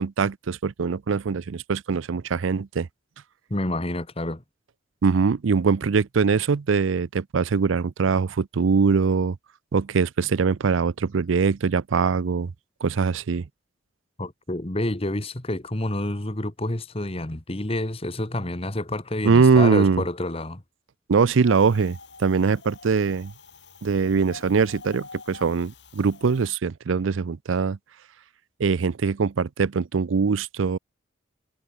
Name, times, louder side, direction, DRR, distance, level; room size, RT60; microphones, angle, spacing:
voice 1, 0.0-2.9 5.0-9.4 9.7-12.5 12.8-13.5 19.2-20.0 21.1-23.3 23.8-27.8 28.6-30.8, right 5 dB, 85° right, 0.5 m, -22 dB
voice 2, 3.5-4.4 14.2-20.6, left 1 dB, 30° left, 1.5 m, -28 dB
Wind, 21.4-26.5, left 3 dB, 60° left, 4.7 m, -45 dB
head